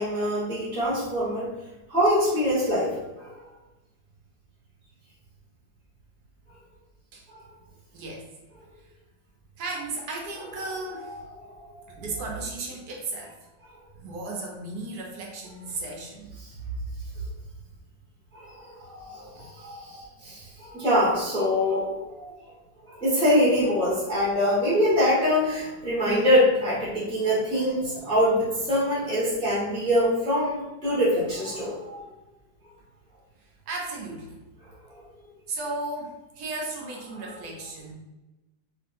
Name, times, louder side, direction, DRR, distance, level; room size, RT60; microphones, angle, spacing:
voice 1, 0.0-1.5 1.9-3.3 7.3-7.4 11.0-11.8 13.7-13.8 16.4-16.5 18.3-22.5 22.8-32.0 34.6-35.0, equal, 5° left, -9 dB, 0.9 m, -25 dB
voice 2, 7.9-8.3 9.6-11.2 11.9-13.4 13.9-16.8 17.1-17.2 19.3-19.5 33.4-34.4 35.5-37.9, right 3 dB, 70° right, 0 dB, 1.1 m, -35 dB
3.1 x 2.6 x 2.6 m, 1.0 s
omnidirectional pair, 1.9 m